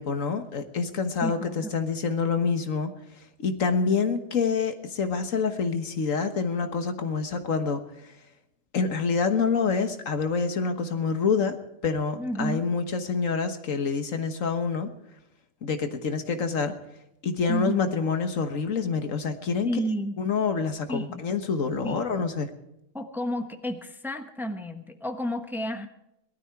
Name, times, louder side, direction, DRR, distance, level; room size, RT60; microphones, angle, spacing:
voice 1, 0.0-2.9 3.4-7.8 8.7-11.6 11.8-14.9 15.6-16.7 17.2-19.7 20.2-22.5, left 5 dB, 85° left, 7 dB, 1.7 m, -27 dB
voice 2, 1.2-1.7 12.2-12.6 17.5-17.9 19.6-20.2 20.9-21.3 21.8-22.0 22.9-25.9, equal, ahead, 6 dB, 1.1 m, -31 dB
19.0 x 13.0 x 4.7 m, 0.84 s
omnidirectional pair, 1.3 m